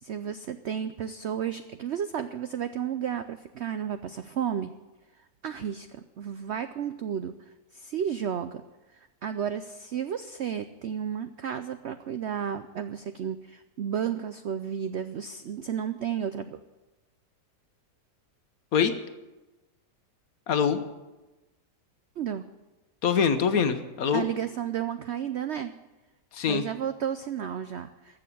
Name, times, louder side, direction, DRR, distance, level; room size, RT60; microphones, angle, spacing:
voice 1, 0.0-4.7 5.4-7.3 7.7-8.6 8.9-16.6 22.2-22.4 24.1-25.7 26.5-28.2, right 8 dB, 75° right, 10 dB, 0.6 m, -32 dB
voice 2, 20.5-20.8 23.0-24.3 26.3-26.6, left 7 dB, 60° left, 10 dB, 1.3 m, -24 dB
15.0 x 6.6 x 10.0 m, 1.1 s
omnidirectional pair, 1.8 m